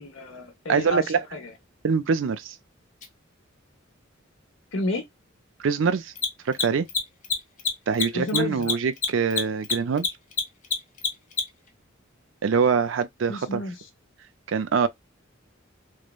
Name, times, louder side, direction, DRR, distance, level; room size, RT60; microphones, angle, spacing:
voice 1, 0.0-1.5 4.7-5.0 8.1-8.7 13.3-13.9, left 2 dB, 70° left, 0.8 m, -31 dB
voice 2, 0.7-1.2 1.8-2.6 5.6-6.1 6.5-6.9 7.9-10.1 12.4-13.6 14.5-14.9, right 5 dB, 65° right, 0.4 m, -24 dB
Mechanisms, 3.0-3.1 6.1-11.7, left 6 dB, 40° left, 0.6 m, -26 dB
3.1 x 2.1 x 2.2 m
head